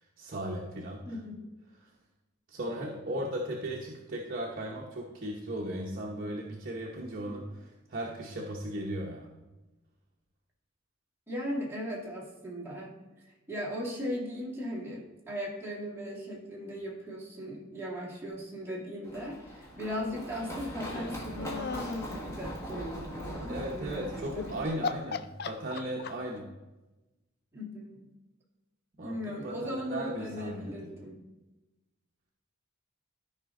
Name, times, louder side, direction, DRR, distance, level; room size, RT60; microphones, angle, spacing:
voice 1, 0.2-1.0 2.5-9.3 23.5-26.5 29.0-30.9, right 1 dB, 45° right, -2 dB, 1.0 m, -37 dB
voice 2, 1.1-1.4 11.3-24.6 27.5-28.0 29.0-31.2, equal, 10° right, -4 dB, 2.2 m, -38 dB
Run, 19.0-24.7, equal, 15° left, 1.4 m, -40 dB
sound 1, 20.8-22.2 24.2-24.5 24.8-26.4, left 5 dB, 50° left, 0.4 m, -36 dB
13.5 x 5.0 x 3.7 m, 1.1 s
head